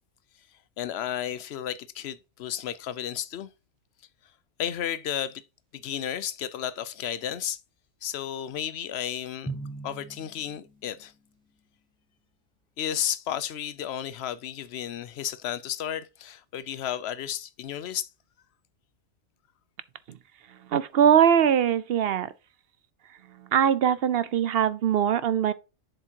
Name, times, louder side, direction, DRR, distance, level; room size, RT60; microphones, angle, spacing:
voice 1, 0.8-3.5 4.6-5.4 5.7-7.6 8.0-9.5 9.8-11.1 12.8-18.1, left 10 dB, 70° left, 0.9 m, -33 dB
Drum, 9.5-11.2, right 3 dB, 5° left, 0.8 m, -39 dB
voice 2, 20.7-22.3 23.4-25.5, right 9 dB, 65° right, 0.7 m, -22 dB
7.3 x 7.0 x 2.8 m
omnidirectional pair, 1.2 m